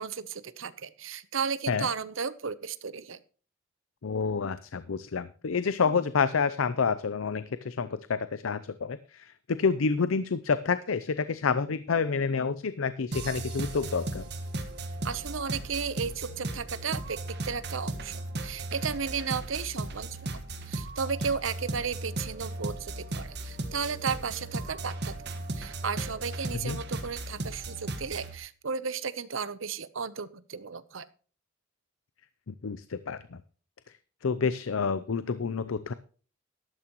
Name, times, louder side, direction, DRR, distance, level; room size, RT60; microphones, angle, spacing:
voice 1, 0.0-3.2 15.0-17.2 17.4-25.1 25.5-31.0, right 6 dB, 75° right, 15 dB, 0.8 m, -34 dB
voice 2, 4.0-14.2 26.6-26.8 32.5-33.4 34.2-35.9, left 5 dB, 85° left, 14 dB, 0.6 m, -28 dB
sound 1, 13.1-28.4, right 2 dB, 55° right, 1.5 m, -36 dB
12.5 x 12.5 x 3.0 m, 0.40 s
head